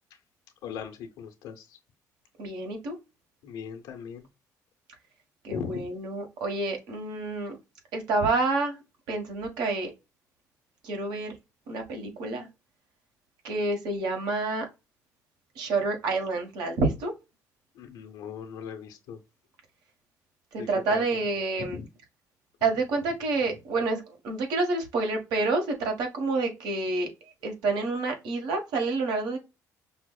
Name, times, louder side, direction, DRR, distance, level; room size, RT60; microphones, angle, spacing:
voice 1, 0.6-1.8 3.4-4.3 5.5-5.9 17.7-19.2 20.6-21.0 21.6-21.9, left 7 dB, 90° left, 0.8 m, -39 dB
voice 2, 2.4-2.9 5.4-7.6 7.9-8.7 9.1-9.9 10.8-11.3 11.7-12.5 13.4-14.6 15.6-17.1 20.7-21.8 22.6-27.1 27.4-29.4, right 3 dB, 85° right, 1.3 m, -28 dB
5.7 x 2.0 x 2.3 m
cardioid pair, 95°, 7 cm